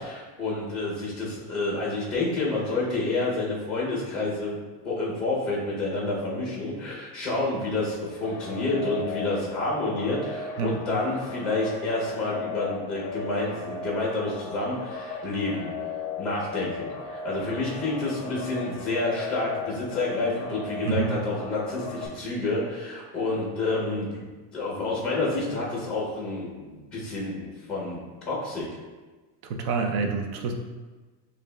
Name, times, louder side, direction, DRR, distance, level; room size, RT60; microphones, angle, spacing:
voice 1, 0.0-4.6 4.8-15.7 16.2-24.2 24.5-28.0 28.2-28.7, left 2 dB, ahead, -4 dB, 0.5 m, -29 dB
sound 1, 8.2-22.1, left 5 dB, 50° left, 0.5 m, -36 dB
voice 2, 20.8-21.2 29.5-30.5, right 5 dB, 60° right, 4 dB, 0.6 m, -27 dB
6.7 x 2.4 x 2.2 m, 1.3 s
cardioid pair, 175°, 49 cm